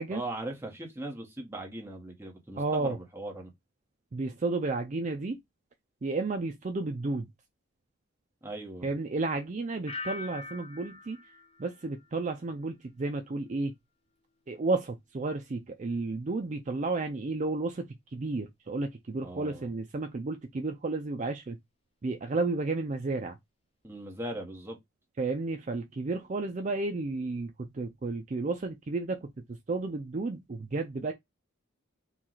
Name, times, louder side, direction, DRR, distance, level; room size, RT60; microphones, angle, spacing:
voice 1, 0.1-3.5 8.4-8.9 19.2-19.7 23.8-24.8, right 1 dB, 10° right, 1.1 m, -39 dB
voice 2, 2.6-3.0 4.1-5.4 6.0-7.3 8.8-11.2 11.6-13.7 14.5-21.6 22.0-23.4 25.2-31.1, right 3 dB, 35° right, 0.4 m, -32 dB
sound 1, 9.9-12.7 13.0-13.5, left 3 dB, 30° left, 0.6 m, -44 dB
4.6 x 2.4 x 3.9 m
head